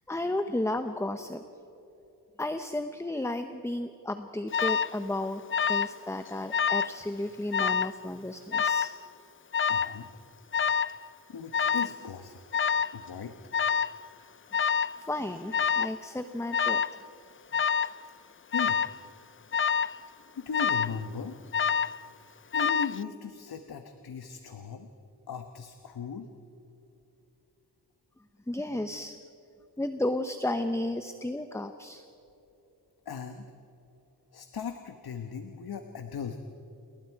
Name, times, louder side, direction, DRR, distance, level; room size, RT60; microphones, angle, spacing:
voice 1, 0.1-1.4 2.4-8.9 15.1-16.8 28.5-29.2 29.8-32.0, left 1 dB, 5° left, 8 dB, 0.8 m, -33 dB
Alarm, 4.5-5.0 5.5-6.0 6.3-7.0 7.5-7.9 8.5-9.0 9.5-10.0 10.5-11.0 11.5-12.0 12.5-13.0 13.5-14.0 14.5-15.0 15.5-16.0 16.5-17.0 17.5-18.0 18.5-19.0 19.5-20.0 20.5-21.0 21.5-22.0 22.5-23.0, left 6 dB, 35° left, 0.4 m, -27 dB
voice 2, 9.7-10.1 11.3-12.4 12.9-13.3 18.5-18.8 20.4-21.4 22.5-24.9 25.3-26.3 33.1-33.5 34.3-36.4, left 6 dB, 70° left, 7 dB, 1.2 m, -38 dB
28.5 x 21.0 x 4.7 m, 2.9 s
wide cardioid pair, 105°, 39 cm